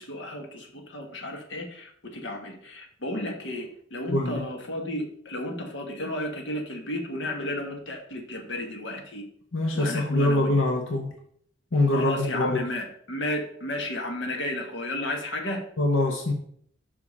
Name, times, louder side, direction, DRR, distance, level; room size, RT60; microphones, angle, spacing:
voice 1, 0.0-9.2 9.7-10.5 11.9-15.6, left 1 dB, 65° left, 3 dB, 1.3 m, -33 dB
voice 2, 4.1-4.4 9.5-11.1 11.7-12.6 15.8-16.3, left 2 dB, 85° left, 1 dB, 1.0 m, -24 dB
5.7 x 5.0 x 5.5 m, 0.63 s
head